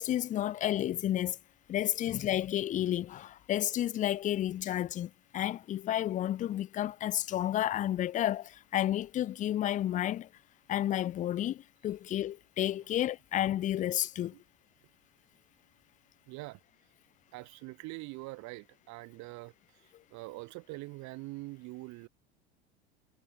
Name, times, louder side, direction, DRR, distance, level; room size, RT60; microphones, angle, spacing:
voice 1, 0.0-1.4 1.7-10.3 10.7-14.3, left 12 dB, 25° left, 0.4 m, -31 dB
voice 2, 16.3-16.6 17.3-19.5 20.1-22.1, right 23 dB, 55° right, 1.7 m, -44 dB
hypercardioid pair, 100°, 33 cm